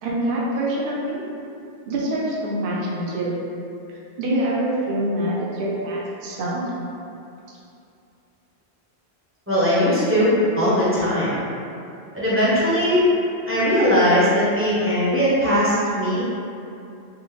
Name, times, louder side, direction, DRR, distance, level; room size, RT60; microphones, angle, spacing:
voice 1, 0.0-1.2 1.8-3.3 3.9-6.6, right 1 dB, 60° right, -5 dB, 0.7 m, -25 dB
voice 2, 9.5-11.3 12.1-13.0 13.5-16.2, equal, 15° right, -11 dB, 0.6 m, -19 dB
3.4 x 2.0 x 3.0 m, 2.6 s
omnidirectional pair, 1.1 m